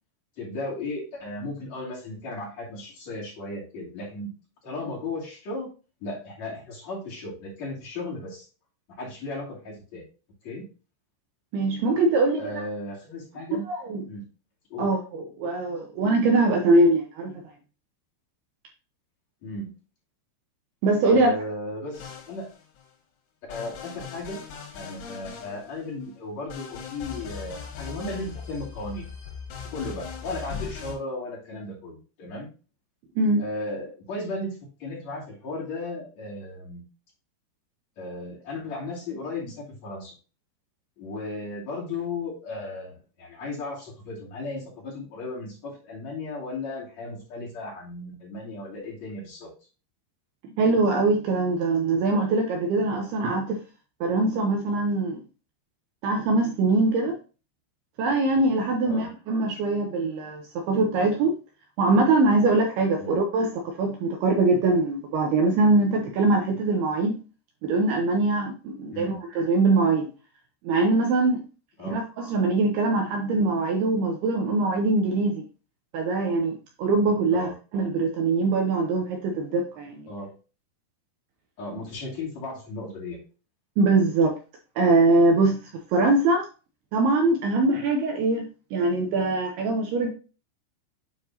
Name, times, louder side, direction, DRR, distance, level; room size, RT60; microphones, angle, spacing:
voice 1, 0.4-4.3 4.6-5.7 6.0-8.4 9.0-10.0 10.4-10.7 12.4-13.7 14.1-14.2 14.7-14.9 19.4-19.7 21.1-22.5 23.5-24.4 24.7-29.1 29.7-32.5 33.4-36.8 38.0-40.1 41.0-49.5 58.8-59.1 63.0-63.2 68.9-69.2 71.8-72.0 77.3-77.6 80.1-80.3 81.6-83.2, left 2 dB, 40° left, -5 dB, 3.2 m, -35 dB
voice 2, 11.5-12.6 13.7-14.1 14.8-17.4 20.8-21.3 33.2-33.4 50.6-53.6 54.0-55.2 56.0-57.2 58.0-61.4 61.8-67.2 67.6-70.1 70.6-71.4 71.8-75.4 75.9-80.1 83.8-84.4 84.8-85.6 85.9-86.5 86.9-90.1, right 2 dB, 80° right, 2 dB, 2.4 m, -22 dB
sound 1, 21.9-22.8 23.5-26.0 26.5-31.0, left 7 dB, 80° left, 4.0 m, -39 dB
9.0 x 4.7 x 2.8 m, 0.34 s
omnidirectional pair, 5.5 m